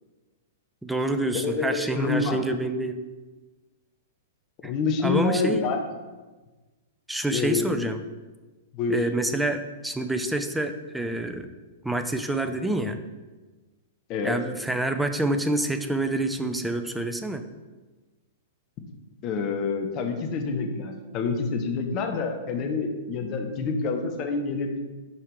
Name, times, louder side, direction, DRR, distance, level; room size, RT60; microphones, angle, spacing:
voice 1, 0.8-3.0 4.6-4.7 5.0-5.7 7.1-8.0 8.9-11.5 11.8-13.0 14.2-17.4, right 1 dB, 5° right, 7 dB, 0.5 m, -27 dB
voice 2, 1.3-2.4 4.6-5.8 7.3-7.8 8.7-9.0 14.1-14.4 19.2-24.7, left 4 dB, 35° left, 4 dB, 0.9 m, -27 dB
5.5 x 4.6 x 4.7 m, 1.2 s
figure-of-eight pair, 105°, 0 cm